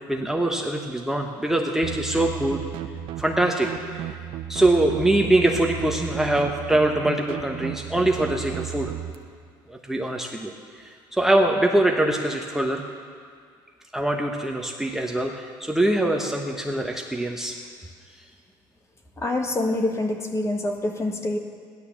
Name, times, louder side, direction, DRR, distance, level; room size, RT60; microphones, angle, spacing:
voice 1, 0.1-2.6 3.2-3.7 3.9-4.1 4.5-8.9 9.7-12.8 13.9-17.6, right 1 dB, 5° right, 1 dB, 1.1 m, -23 dB
sound 1, 1.8-9.1, right 11 dB, 65° right, 0.8 m, -34 dB
voice 2, 19.2-21.4, left 2 dB, 30° left, 3 dB, 1.7 m, -26 dB
15.5 x 11.5 x 7.3 m, 2.1 s
cardioid pair, 105°, 10 cm